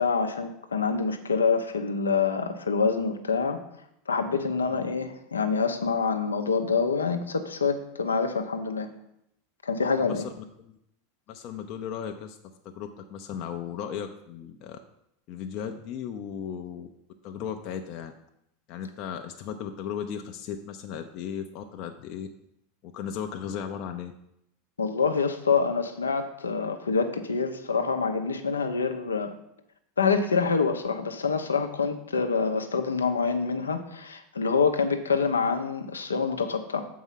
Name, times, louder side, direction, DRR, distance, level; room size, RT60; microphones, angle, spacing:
voice 1, 0.0-3.6 4.1-8.9 9.6-10.2 24.8-29.3 30.0-36.9, left 5 dB, 90° left, 7 dB, 0.7 m, -26 dB
voice 2, 10.0-10.3 10.6-10.7 11.3-12.4 12.8-14.8 15.3-16.9 17.2-18.2 18.7-22.3 22.8-24.1, left 8 dB, 50° left, 5 dB, 0.6 m, -36 dB
7.1 x 4.7 x 5.7 m, 0.78 s
hypercardioid pair, 90°, 0 cm